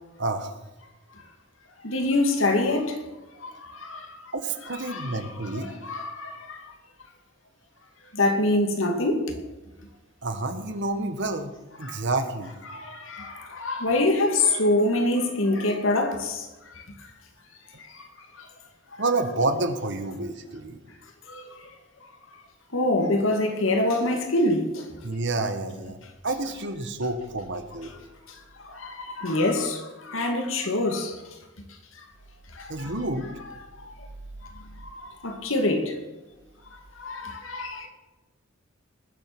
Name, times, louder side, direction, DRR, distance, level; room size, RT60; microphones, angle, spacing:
voice 1, 0.2-0.6 4.3-5.7 10.2-11.5 11.8-12.5 19.0-20.8 25.0-26.0 26.2-27.9 32.7-33.2, right 2 dB, 65° right, 1.6 m, -29 dB
voice 2, 1.8-3.0 3.4-4.1 4.8-5.1 5.5-6.7 8.1-9.3 11.8-12.0 12.7-16.4 17.9-18.0 21.3-21.5 22.7-24.9 28.6-31.2 32.6-32.9 33.8-33.9 34.8-35.9 37.0-37.9, left 2 dB, 85° left, 2.4 m, -25 dB
20.0 x 7.9 x 6.2 m
head